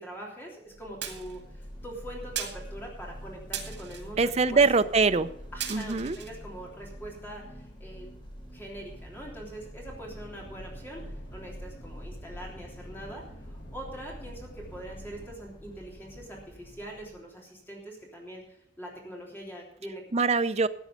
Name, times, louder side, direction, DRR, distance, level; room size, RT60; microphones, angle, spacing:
voice 1, 0.0-4.6 5.5-8.1 8.5-20.0, right 1 dB, 15° left, -2 dB, 3.3 m, -43 dB
sound 1, 0.7-17.3, equal, 30° left, 3.3 m, -46 dB
sound 2, 1.0-1.4 2.4-2.6 3.5-4.0 5.1-5.2 5.6-6.3, right 9 dB, 85° right, 2.2 m, -36 dB
voice 2, 4.2-5.3 5.7-6.2 20.1-20.7, right 4 dB, 40° right, 11 dB, 0.6 m, -23 dB
sound 3, 9.8-15.3, equal, 75° left, 1.9 m, -47 dB
14.0 x 9.0 x 5.2 m, 0.72 s
head